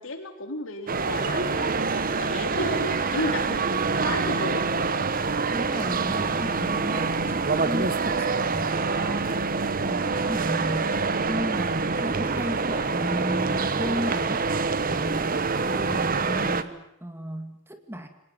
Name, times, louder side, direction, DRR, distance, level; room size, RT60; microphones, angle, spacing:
voice 1, 0.0-3.6 4.0-4.6, left 2 dB, 65° left, 5 dB, 3.9 m, -33 dB
sound 1, 0.9-16.6, right 4 dB, 45° right, 1.2 m, -26 dB
voice 2, 5.5-11.0 11.3-14.5 14.8-18.1, equal, 10° right, 7 dB, 2.2 m, -34 dB
25.0 x 19.0 x 9.0 m, 0.80 s
head